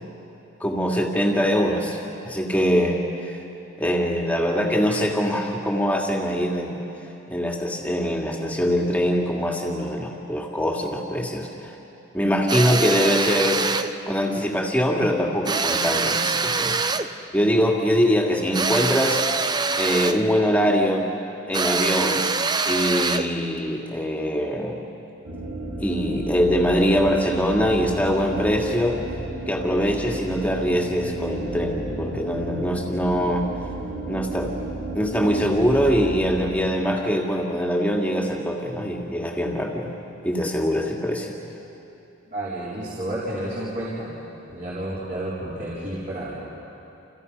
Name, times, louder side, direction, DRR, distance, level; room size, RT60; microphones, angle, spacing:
voice 1, 0.6-2.0 2.2-3.4 3.8-6.8 7.3-11.8 12.1-13.6 14.1-16.8 17.3-19.2 19.8-21.1 21.5-22.2 22.6-24.8 25.8-29.0 29.5-33.4 34.1-34.5 34.9-39.9 40.2-41.3, equal, 5° left, -1 dB, 2.5 m, -23 dB
sound 1, 12.5-13.9 15.5-17.1 18.5-20.3 21.5-23.4, right 4 dB, 20° right, 0.6 m, -24 dB
sound 2, 25.2-36.5, right 1 dB, 75° right, 6.9 m, -33 dB
voice 2, 42.3-44.1 44.5-46.3, right 1 dB, 40° right, -8 dB, 4.7 m, -31 dB
30.0 x 28.5 x 5.6 m, 2.9 s
head